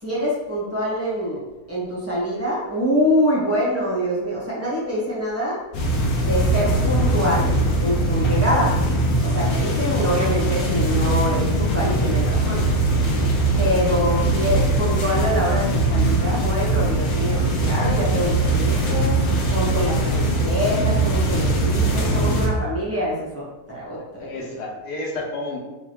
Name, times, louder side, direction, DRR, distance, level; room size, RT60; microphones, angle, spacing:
voice 1, 0.0-1.4 1.7-5.6 6.2-7.5 7.8-8.7 9.2-12.6 13.5-19.2 19.5-24.4, equal, 10° right, -7 dB, 1.3 m, -25 dB
sound 1, 5.7-22.5, right 1 dB, 70° left, 1.3 m, -21 dB
voice 2, 24.2-25.6, left 2 dB, 85° left, -1 dB, 1.5 m, -31 dB
4.3 x 4.0 x 3.0 m, 1.1 s
omnidirectional pair, 1.7 m